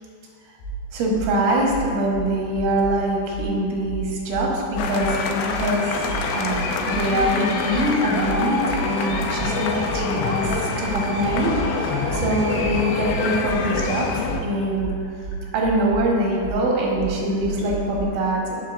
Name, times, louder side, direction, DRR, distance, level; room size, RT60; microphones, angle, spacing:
sound 1, 0.6-0.8 1.1-1.3 1.7-3.0 3.3-3.5 3.9-5.1 5.5-5.7 6.1-7.3 7.7-11.7 12.0-18.0, right 4 dB, 65° left, 3.6 m, -32 dB
voice 1, 0.9-11.5 11.8-14.1 14.4-14.9 15.5-18.6, right 1 dB, 90° right, -2 dB, 3.9 m, -24 dB
sound 2, 4.8-14.4, left 5 dB, 90° left, 2.1 m, -26 dB
sound 3, 5.5-13.4, right 2 dB, 55° right, 3.1 m, -33 dB
18.5 x 6.5 x 2.6 m, 2.3 s
omnidirectional pair, 5.2 m